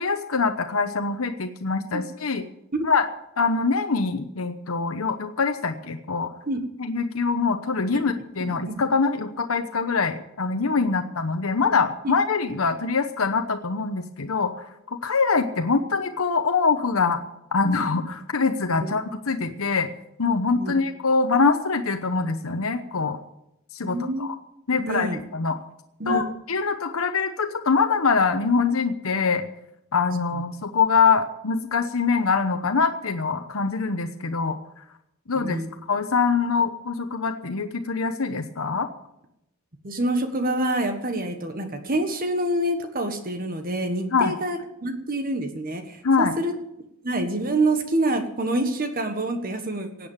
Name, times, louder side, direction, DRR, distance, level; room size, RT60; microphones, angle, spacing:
voice 1, 0.0-2.4 2.8-3.1 3.4-6.3 6.8-17.2 17.5-19.9 20.2-23.2 23.7-24.3 24.7-25.6 26.1-29.4 29.9-34.6 35.3-35.6 35.9-38.9 44.1-44.3 46.0-46.3, left 4 dB, 90° left, 7 dB, 1.0 m, -24 dB
voice 2, 8.5-8.8 10.8-10.9 18.8-18.9 20.5-20.7 23.8-24.3 24.8-25.2 26.0-26.3 30.3-30.4 35.3-35.7 39.8-46.5 47.0-50.1, right 1 dB, 45° right, 7 dB, 1.5 m, -27 dB
17.5 x 8.5 x 7.3 m, 0.83 s
head